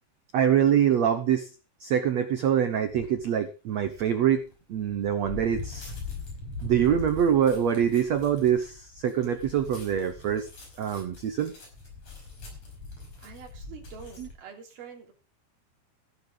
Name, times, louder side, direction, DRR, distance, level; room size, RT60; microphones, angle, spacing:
voice 1, 0.3-1.5 1.8-4.4 4.7-5.9 6.6-10.5 10.8-11.5 14.2-14.3, right 9 dB, 80° right, 9 dB, 1.5 m, -24 dB
sound 1, 2.9-3.2 3.8-14.3, left 4 dB, 40° left, 6.4 m, -42 dB
voice 2, 13.2-15.1, right 7 dB, 65° right, 2 dB, 5.2 m, -46 dB
14.5 x 12.0 x 3.9 m, 0.33 s
omnidirectional pair, 4.8 m